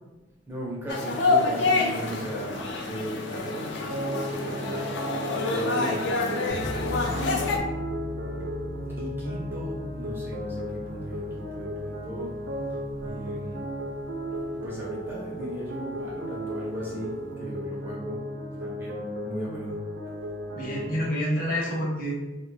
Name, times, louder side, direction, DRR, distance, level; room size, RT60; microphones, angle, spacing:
voice 1, 0.5-6.6 9.0-12.4 13.0-13.6 14.6-18.2 18.6-19.8, right 1 dB, 10° right, -5 dB, 0.4 m, -38 dB
sound 1, 0.9-7.6, left 3 dB, 65° left, 0.4 m, -27 dB
sound 2, 3.9-21.0, equal, 70° right, 0.5 m, -35 dB
sound 3, 6.5-17.3, left 2 dB, 90° left, 0.8 m, -40 dB
voice 2, 20.5-22.1, equal, 45° left, -4 dB, 0.8 m, -28 dB
2.2 x 2.1 x 3.1 m, 1.1 s
head